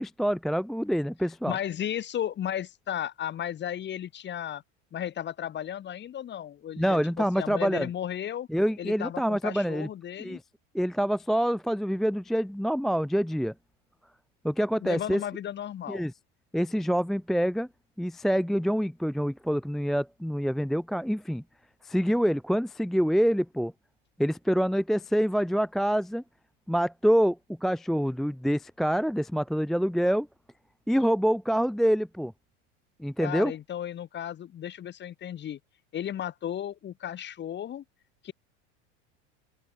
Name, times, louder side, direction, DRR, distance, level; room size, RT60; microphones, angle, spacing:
voice 1, 0.0-1.6 6.8-7.9 8.5-9.9 10.2-10.4 10.7-13.5 14.4-15.2 15.9-16.1 16.5-17.7 18.0-21.4 21.8-23.7 24.2-26.2 26.7-30.3 30.9-32.3 33.0-33.5, equal, ahead, 0.5 m, -26 dB
voice 2, 1.5-4.6 4.9-8.5 8.8-10.4 14.8-16.0 33.2-35.6 35.9-37.8 38.2-38.3, left 10 dB, 30° left, 1.4 m, -34 dB
open air
supercardioid pair, 115°, 37 cm